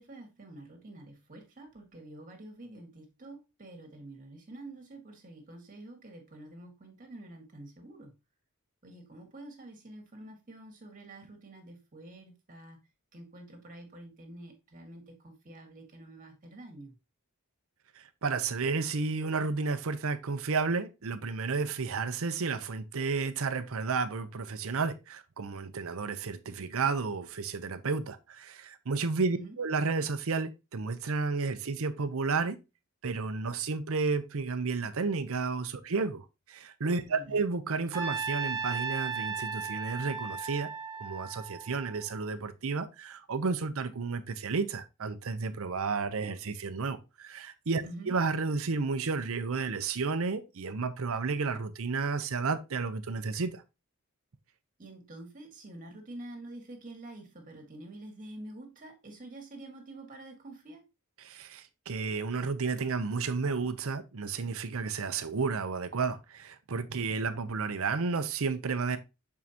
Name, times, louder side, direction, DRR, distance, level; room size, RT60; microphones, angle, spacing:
voice 1, 0.0-8.1 8.8-12.8 13.1-16.9 29.3-29.6 37.1-37.4 47.8-48.1 54.8-60.8, right 1 dB, 40° right, 1.9 m, -47 dB
voice 2, 18.0-32.6 33.0-40.7 41.0-53.6 61.2-69.0, right 4 dB, 65° right, 0.7 m, -32 dB
Trumpet, 37.9-42.1, right 5 dB, 15° right, 1.0 m, -36 dB
7.3 x 4.7 x 2.9 m
head